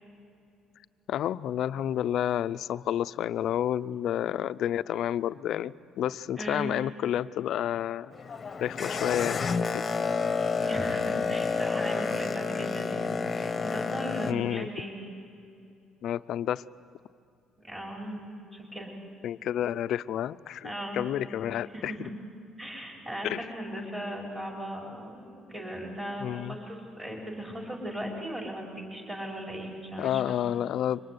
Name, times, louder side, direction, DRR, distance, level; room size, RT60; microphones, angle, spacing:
voice 1, 1.1-8.1 8.6-9.8 14.3-14.7 16.0-16.6 19.2-21.9 23.2-23.4 26.2-26.5 30.0-31.0, left 11 dB, 55° left, 14 dB, 0.6 m, -30 dB
voice 2, 6.4-6.7 10.6-15.0 17.6-18.9 20.6-21.1 21.7-22.1 22.6-30.4, equal, 15° right, -1 dB, 5.5 m, -38 dB
Boat Water vehicle, 8.1-14.3, left 5 dB, 25° left, 1.1 m, -30 dB
26.0 x 24.0 x 9.6 m, 2.5 s
cardioid pair, 160°, 0 cm